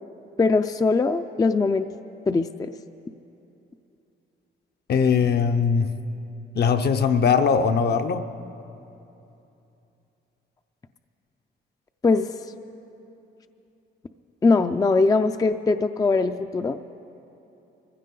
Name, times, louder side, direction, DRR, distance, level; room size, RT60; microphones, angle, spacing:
voice 1, 0.4-1.9 2.3-2.7 12.0-12.3 14.4-16.9, left 3 dB, 20° left, 8 dB, 0.4 m, -21 dB
voice 2, 4.9-5.9 6.5-8.2, left 6 dB, 55° left, 8 dB, 0.7 m, -20 dB
22.5 x 15.5 x 3.8 m, 2.9 s
cardioid pair, 90°, 20 cm